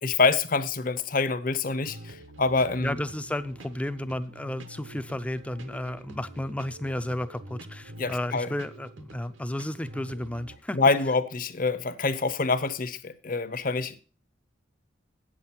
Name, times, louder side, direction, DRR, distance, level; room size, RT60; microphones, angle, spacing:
voice 1, 0.0-3.0 8.0-8.5 10.7-14.0, left 4 dB, 45° left, 0.7 m, -26 dB
sound 1, 1.6-10.6, right 1 dB, 80° right, 1.1 m, -46 dB
voice 2, 2.8-10.8, left 1 dB, 5° left, 0.4 m, -33 dB
8.6 x 7.5 x 5.7 m
head